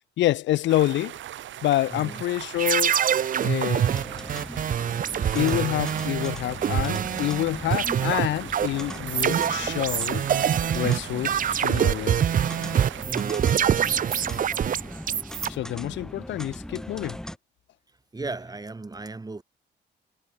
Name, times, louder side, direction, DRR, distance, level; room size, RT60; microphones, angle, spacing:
voice 1, 0.2-1.2 1.6-3.0 3.4-3.9 5.3-10.3 10.7-12.3 15.5-17.2, left 14 dB, 65° left, 0.5 m, -27 dB
sound 1, 0.7-13.1, right 12 dB, 70° right, 1.5 m, -40 dB
voice 2, 1.9-2.2 13.1-13.9 18.1-19.4, right 3 dB, 20° right, 2.9 m, -36 dB
sound 2, 2.6-7.4 7.7-15.5, right 9 dB, 45° right, 0.6 m, -25 dB
sound 3, 3.9-17.4, equal, 5° left, 1.1 m, -39 dB
cardioid pair, 90°, 20 cm